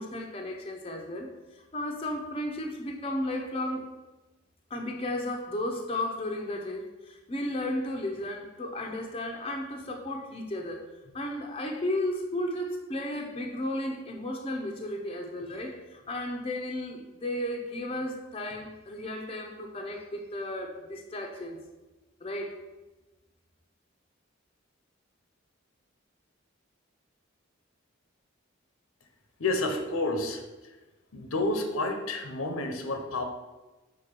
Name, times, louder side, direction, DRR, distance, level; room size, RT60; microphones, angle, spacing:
voice 1, 0.0-3.9 4.7-10.8 11.1-21.6 22.2-22.6, left 1 dB, 30° left, 2 dB, 0.6 m, -34 dB
voice 2, 29.4-30.4 31.1-33.2, left 2 dB, 85° left, 5 dB, 0.9 m, -29 dB
5.8 x 3.8 x 5.2 m, 1.1 s
head